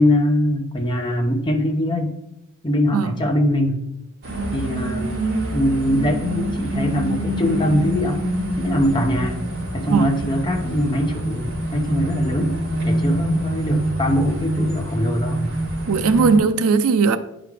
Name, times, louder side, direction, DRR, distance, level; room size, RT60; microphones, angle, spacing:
voice 1, 0.0-2.1 2.6-3.8 4.5-5.1 5.5-8.2 8.6-9.4 9.7-12.6 12.9-15.4, left 1 dB, 20° left, 0.8 m, -22 dB
sound 1, 4.2-16.4, right 1 dB, 60° right, 3.0 m, -25 dB
voice 2, 9.8-10.2 15.9-17.2, right 5 dB, 75° right, 0.4 m, -18 dB
9.5 x 5.1 x 3.3 m
head